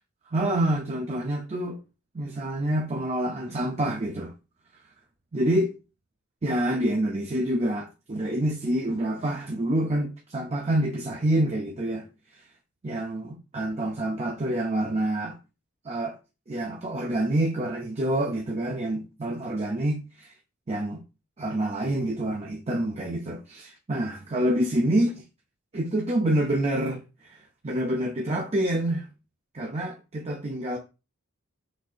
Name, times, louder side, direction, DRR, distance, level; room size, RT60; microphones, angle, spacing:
voice 1, 0.3-1.8 2.1-4.3 5.3-5.7 6.4-12.1 12.8-15.4 15.8-16.2 16.5-20.3 20.7-21.0 21.4-25.2 25.7-27.0 27.3-27.4 27.6-29.1 29.5-30.8, right 1 dB, 30° right, 0.5 m, -27 dB
6.1 x 2.8 x 2.4 m
head